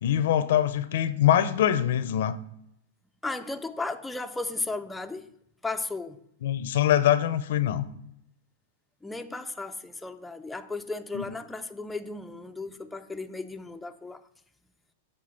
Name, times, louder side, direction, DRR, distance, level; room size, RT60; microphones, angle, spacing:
voice 1, 0.0-2.4 6.4-7.8 11.1-11.3, left 11 dB, 70° left, 0.5 m, -23 dB
voice 2, 3.2-5.3 5.6-6.2 9.0-14.2, left 3 dB, 5° left, 0.4 m, -35 dB
7.6 x 3.8 x 5.7 m
hypercardioid pair, 135°, 0 cm